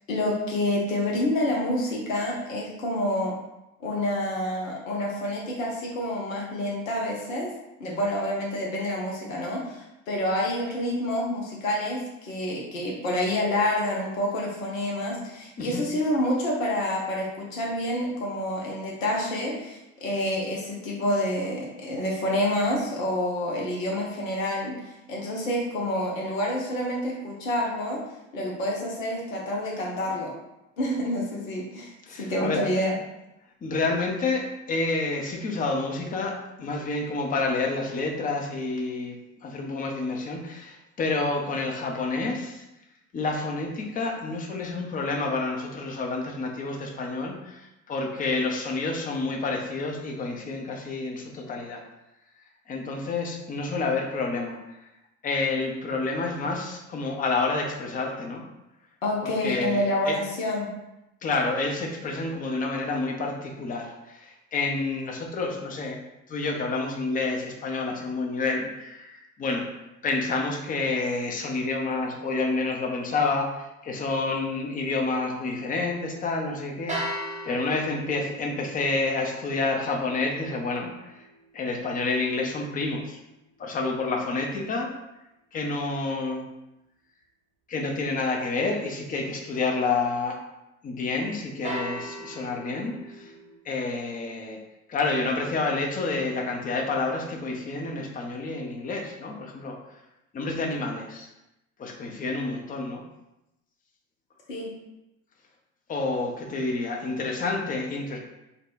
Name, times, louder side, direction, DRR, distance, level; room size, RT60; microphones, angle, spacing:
voice 1, 0.1-3.3 3.8-7.5 7.8-24.7 25.1-28.0 28.3-30.3 30.8-33.0 59.0-60.7 104.5-104.7, left 1 dB, 80° left, -3 dB, 0.7 m, -28 dB
voice 2, 32.1-32.6 33.6-42.6 43.1-51.8 52.7-54.9 55.2-58.4 59.2-60.2 61.2-66.0 66.3-81.2 81.5-83.2 83.6-84.9 85.5-86.5 87.7-90.4 90.8-93.3 93.6-94.6 94.9-99.8 100.3-101.3 101.8-103.0 105.9-108.2, left 3 dB, 20° left, 1 dB, 0.6 m, -29 dB
sound 1, 76.9-83.0 91.6-93.6, right 1 dB, 20° right, 0.8 m, -39 dB
4.0 x 2.2 x 2.5 m, 0.93 s
figure-of-eight pair, 65°, 40 cm